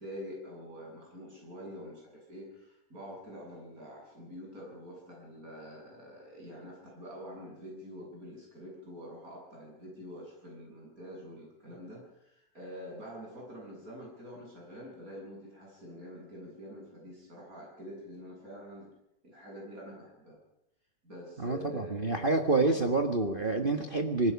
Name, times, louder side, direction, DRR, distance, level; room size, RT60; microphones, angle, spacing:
voice 1, 0.0-18.9 19.2-20.4 21.0-22.3 22.7-23.0 23.4-23.8, equal, 25° right, -2 dB, 8.5 m, -46 dB
voice 2, 21.4-24.3, right 3 dB, 45° right, 4 dB, 0.6 m, -28 dB
26.5 x 19.5 x 5.9 m, 0.84 s
omnidirectional pair, 3.4 m